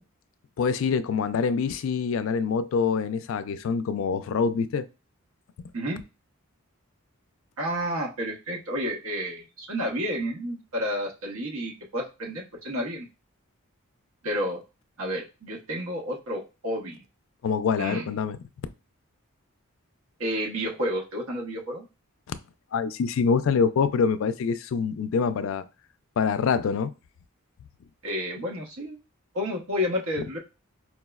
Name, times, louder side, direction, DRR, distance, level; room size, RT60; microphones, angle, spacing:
voice 1, 0.6-4.9 17.4-18.4 22.3-22.4 22.7-25.7 26.2-26.9, left 5 dB, 65° left, 0.3 m, -25 dB
voice 2, 7.6-13.1 14.2-14.6 15.0-17.0 17.8-18.1 20.2-21.8 28.0-29.0 29.3-30.4, equal, 80° right, 1.0 m, -30 dB
4.6 x 2.0 x 2.3 m
head